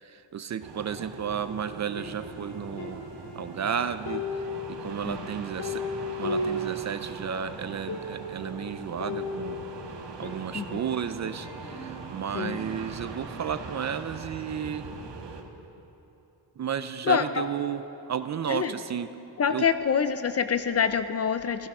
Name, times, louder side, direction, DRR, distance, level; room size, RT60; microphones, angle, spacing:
voice 1, 0.0-3.0 3.3-5.8 6.2-9.6 10.2-14.9 16.6-19.1 19.5-19.7, right 8 dB, 40° right, 11 dB, 0.5 m, -33 dB
sound 1, 0.6-15.4, right 4 dB, 80° right, 1.5 m, -41 dB
sound 2, 2.0-3.7 4.1-7.3 7.6-7.7 7.9-8.5 9.0-11.0 11.4-13.1, left 2 dB, 60° left, 3.1 m, -36 dB
voice 2, 17.0-17.5 18.5-18.7 19.4-21.7, left 7 dB, 35° left, 10 dB, 0.5 m, -26 dB
15.0 x 14.0 x 6.1 m, 3.0 s
wide cardioid pair, 140°, 42 cm